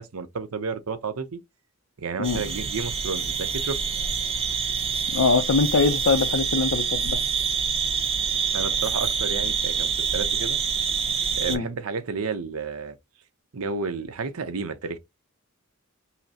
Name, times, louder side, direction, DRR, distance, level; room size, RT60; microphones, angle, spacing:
voice 1, 0.0-1.4 2.0-3.8 8.5-10.6 11.3-13.0 13.5-15.0, right 4 dB, 90° right, 0.7 m, -31 dB
sound 1, 2.2-11.6, right 6 dB, 30° right, 0.7 m, -26 dB
voice 2, 5.1-7.2 11.5-11.7, left 4 dB, 75° left, 0.5 m, -22 dB
5.7 x 2.0 x 2.8 m
head